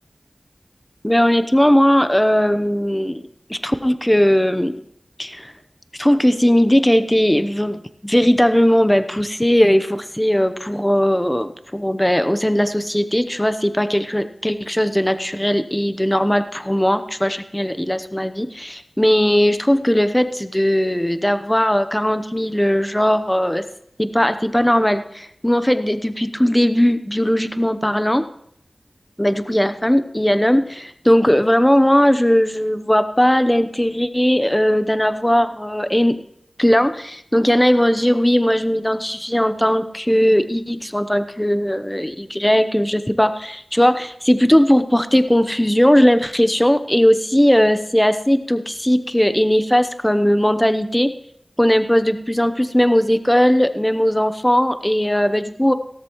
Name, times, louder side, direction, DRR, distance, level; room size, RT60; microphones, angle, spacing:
voice 1, 1.0-3.2 3.5-4.8 5.2-5.5 5.9-23.6 24.0-28.3 29.2-36.2 36.6-51.1 51.6-55.7, equal, 15° left, 11 dB, 0.8 m, -18 dB
17.0 x 13.5 x 3.1 m, 0.71 s
wide cardioid pair, 40°, 0 cm